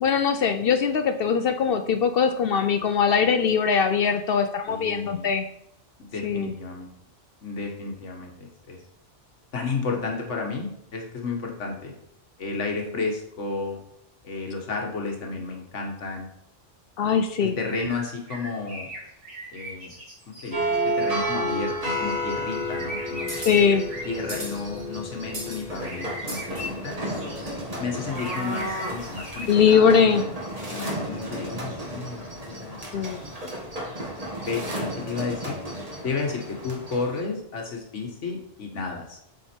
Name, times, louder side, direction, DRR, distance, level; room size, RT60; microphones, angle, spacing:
voice 1, 0.0-5.5 6.2-6.5 17.0-17.6 23.3-23.8 29.5-30.3 32.9-33.2, left 6 dB, 60° left, 9 dB, 0.7 m, -21 dB
voice 2, 4.7-5.3 6.0-6.9 7.4-8.8 9.5-11.9 12.4-13.8 14.2-16.3 17.4-18.9 19.5-19.9 20.3-23.4 24.1-27.3 27.8-30.3 30.7-33.6 34.5-35.6 36.0-39.2, left 4 dB, 80° left, 1 dB, 1.7 m, -32 dB
sound 1, 17.7-21.0 22.7-24.9 25.7-27.5 28.0-30.0, right 1 dB, 90° right, 2.5 m, -40 dB
sound 2, 20.5-37.2, equal, 30° right, 1.8 m, -32 dB
8.1 x 4.3 x 4.4 m, 0.74 s
omnidirectional pair, 1.2 m